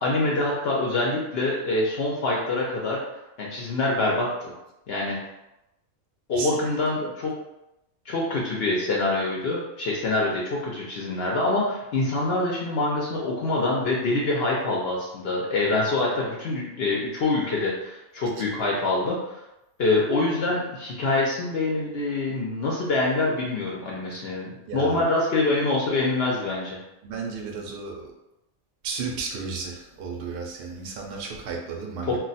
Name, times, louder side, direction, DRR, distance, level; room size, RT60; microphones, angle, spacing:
voice 1, 0.0-3.0 3.4-4.5 4.9-5.2 6.3-7.3 8.1-19.4 19.8-26.8 32.1-32.2, left 2 dB, 60° left, -3 dB, 0.6 m, -25 dB
voice 2, 24.7-25.2 27.0-28.1 28.8-32.2, right 5 dB, 60° right, 0 dB, 0.6 m, -33 dB
2.3 x 2.2 x 3.9 m, 0.93 s
omnidirectional pair, 1.4 m